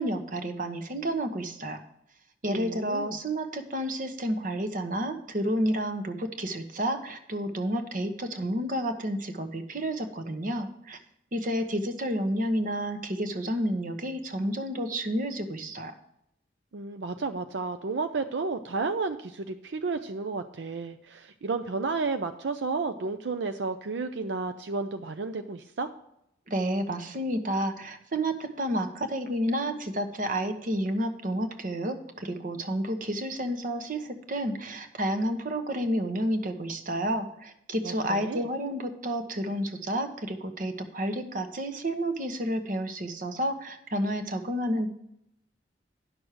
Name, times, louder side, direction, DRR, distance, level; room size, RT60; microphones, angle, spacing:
voice 1, 0.0-1.8 2.4-11.0 11.3-15.9 26.5-44.9, right 1 dB, 50° right, 8 dB, 1.0 m, -30 dB
voice 2, 2.5-3.2 16.7-25.9 37.8-38.5, right 4 dB, 80° right, 8 dB, 0.5 m, -32 dB
10.5 x 6.2 x 4.8 m, 0.80 s
head